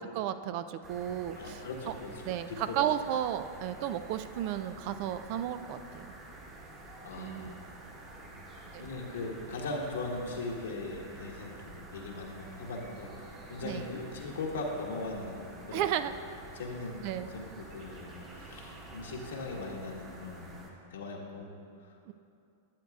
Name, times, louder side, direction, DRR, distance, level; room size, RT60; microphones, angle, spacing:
voice 1, 0.1-1.9 2.2-6.1 7.1-7.5 8.7-8.9 13.6-13.9 15.7-16.1 17.0-17.3 22.1-22.2, right 10 dB, 55° right, 12 dB, 0.3 m, -33 dB
sound 1, 0.8-20.7, right 2 dB, 30° right, 1.4 m, -49 dB
voice 2, 1.4-2.8 7.0-7.7 8.3-15.9 16.5-21.5 21.8-21.9, left 3 dB, 80° left, 0 dB, 1.3 m, -40 dB
12.0 x 8.2 x 2.4 m, 2.5 s
hypercardioid pair, 115°, 0 cm